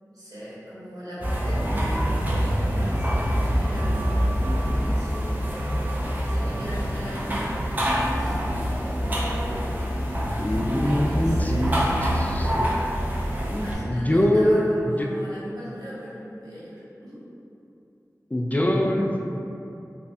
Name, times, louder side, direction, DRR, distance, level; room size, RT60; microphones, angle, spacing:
voice 1, 0.0-5.2 6.2-7.6 8.1-8.7 10.2-12.6 13.5-17.2, equal, 75° right, -11 dB, 1.4 m, -39 dB
sound 1, 1.2-13.7, equal, 30° right, 0.6 m, -25 dB
voice 2, 10.4-11.7 12.0-12.8 13.5-15.1 18.3-19.3, left 1 dB, 25° left, 0 dB, 0.3 m, -24 dB
3.9 x 2.7 x 2.6 m, 2.7 s
wide cardioid pair, 50°, 6 cm